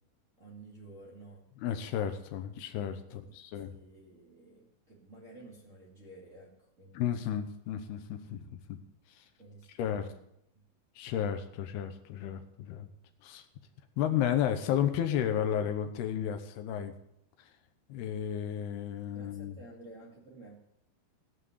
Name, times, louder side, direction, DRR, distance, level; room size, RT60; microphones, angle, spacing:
voice 1, 0.4-1.5 3.1-3.3 3.7-7.1 9.4-10.2 10.5-10.7 19.1-20.6, right 2 dB, 50° right, -5 dB, 0.8 m, -52 dB
voice 2, 1.6-3.7 6.9-8.8 9.1-9.2 9.8-10.1 11.0-12.9 13.2-13.5 14.0-16.9 17.4-17.5 17.9-19.6, left 9 dB, 75° left, 7 dB, 2.5 m, -33 dB
17.0 x 5.7 x 8.1 m, 0.78 s
omnidirectional pair, 5.7 m